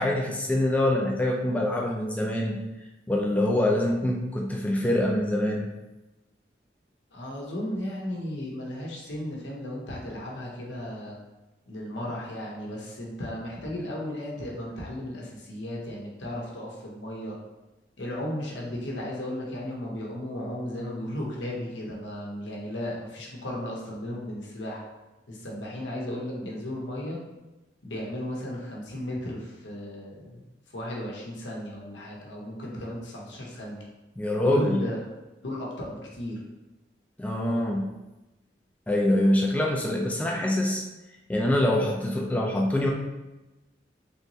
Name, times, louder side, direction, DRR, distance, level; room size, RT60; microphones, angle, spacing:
voice 1, 0.0-2.6 3.1-5.7 34.2-34.8 37.2-37.9 38.9-40.8 41.3-42.9, left 1 dB, 10° left, -1 dB, 0.4 m, -25 dB
voice 2, 7.1-11.2 11.7-17.4 18.0-24.8 25.3-27.2 27.8-33.8 34.4-35.1 35.4-36.4, left 1 dB, 85° left, -3 dB, 0.8 m, -35 dB
3.3 x 3.0 x 2.7 m, 1.0 s
head